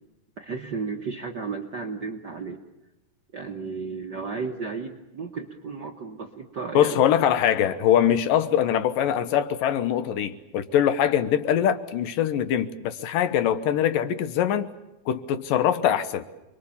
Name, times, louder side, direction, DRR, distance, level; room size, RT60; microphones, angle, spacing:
voice 1, 0.4-2.6 3.3-7.0, right 4 dB, 55° right, 2 dB, 1.1 m, -33 dB
voice 2, 6.7-14.7 15.1-16.2, left 10 dB, 85° left, 12 dB, 2.8 m, -23 dB
28.5 x 22.0 x 7.2 m, 0.99 s
omnidirectional pair, 3.8 m